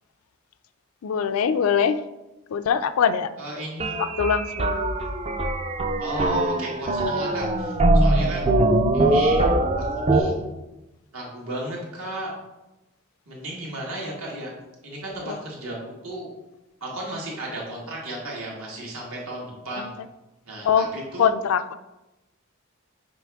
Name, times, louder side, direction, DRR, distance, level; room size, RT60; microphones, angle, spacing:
voice 1, 1.0-2.0 2.5-3.3 4.0-4.8 15.3-15.4 19.8-19.9 20.6-20.9 21.2-21.8, left 7 dB, 85° left, 12 dB, 0.4 m, -22 dB
voice 2, 3.4-4.0 6.0-8.5 8.9-9.5 9.7-10.5 11.1-12.3 13.3-14.5 14.8-16.3 16.8-19.9 20.5-21.3, right 1 dB, 80° right, -3 dB, 2.0 m, -34 dB
sound 1, 3.8-10.2, right 2 dB, 30° right, 0.4 m, -22 dB
6.0 x 5.1 x 3.5 m, 1.0 s
head